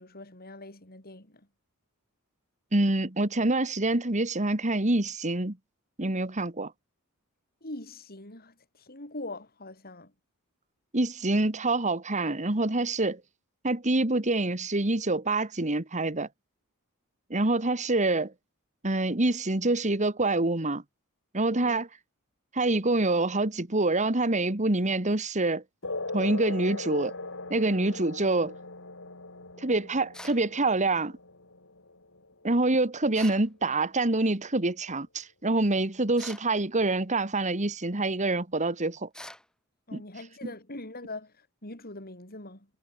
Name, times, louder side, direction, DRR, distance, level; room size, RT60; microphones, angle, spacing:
voice 1, 0.0-1.5 7.6-10.1 21.6-21.8 39.9-42.7, left 2 dB, 45° left, 6.3 m, -42 dB
voice 2, 2.7-5.6 6.0-6.7 10.9-13.2 13.6-16.3 17.3-18.3 18.8-20.8 21.3-21.9 22.5-25.6 26.1-27.2 27.5-28.5 29.6-31.1 32.4-39.1 39.9-40.0, right 2 dB, 35° right, 2.0 m, -26 dB
sound 1, 25.8-32.8, left 2 dB, 60° left, 6.9 m, -39 dB
sound 2, 30.1-30.5 33.1-33.5 36.2-36.5 39.1-39.5, left 1 dB, 5° left, 4.7 m, -44 dB
head